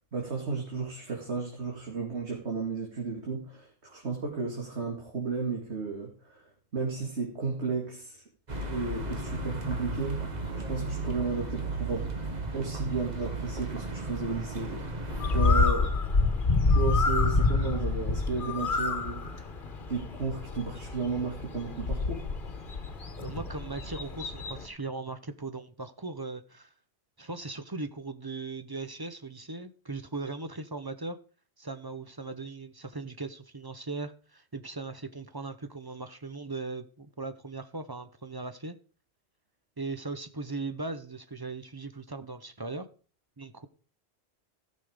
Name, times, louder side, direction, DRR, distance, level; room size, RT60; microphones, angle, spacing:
voice 1, 0.1-8.2 8.7-10.2 10.7-12.1 12.5-15.9 16.7-19.2 19.9-22.2, right 4 dB, 90° right, 2.5 m, -33 dB
sound 1, 8.5-15.7, right 2 dB, 40° right, 1.6 m, -35 dB
Bird, 15.1-24.7, left 3 dB, 50° left, 1.5 m, -28 dB
voice 2, 23.2-26.7 27.2-31.2 31.6-38.7 39.8-42.9 43.4-43.7, right 3 dB, 25° right, 0.7 m, -38 dB
15.0 x 6.3 x 5.0 m
omnidirectional pair, 1.1 m